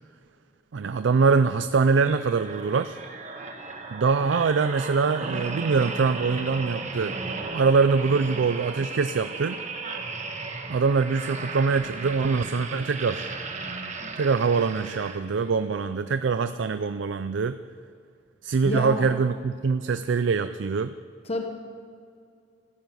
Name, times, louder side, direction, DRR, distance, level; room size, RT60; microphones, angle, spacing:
voice 1, 0.7-3.0 3.9-7.2 7.5-9.6 10.7-13.3 14.2-17.6 18.4-20.9, right 5 dB, 75° right, 11 dB, 0.4 m, -23 dB
weird monster sound, 2.0-15.5 16.1-16.3, right 3 dB, 40° right, 1.4 m, -36 dB
voice 2, 18.6-19.1 21.2-21.4, left 1 dB, 35° left, 3 dB, 1.1 m, -28 dB
14.5 x 10.5 x 7.6 m, 2.3 s
head